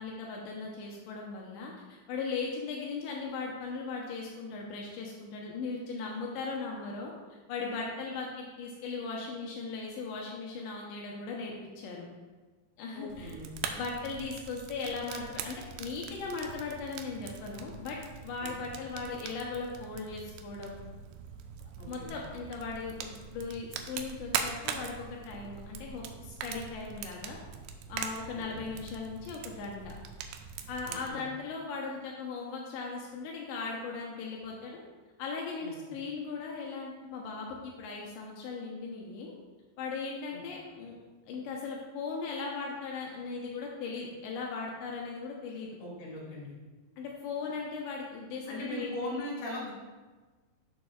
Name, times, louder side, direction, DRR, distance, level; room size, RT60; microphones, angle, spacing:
voice 1, 0.0-12.1 12.8-13.4 13.7-18.0 18.2-20.8 21.9-27.4 27.9-29.9 30.7-34.8 35.2-39.3 39.8-41.0 41.3-45.7 47.0-49.0, left 4 dB, 80° left, -2 dB, 2.9 m, -38 dB
voice 2, 12.9-13.5 18.4-18.5 21.8-22.1 28.3-28.4 30.9-31.2 35.6-35.7 40.3-40.4 45.8-46.5 48.5-49.7, left 1 dB, 60° left, -5 dB, 3.9 m, -39 dB
Fire, 13.1-31.1, right 7 dB, 85° right, 2.5 m, -42 dB
12.0 x 6.4 x 2.4 m, 1.3 s
omnidirectional pair, 5.3 m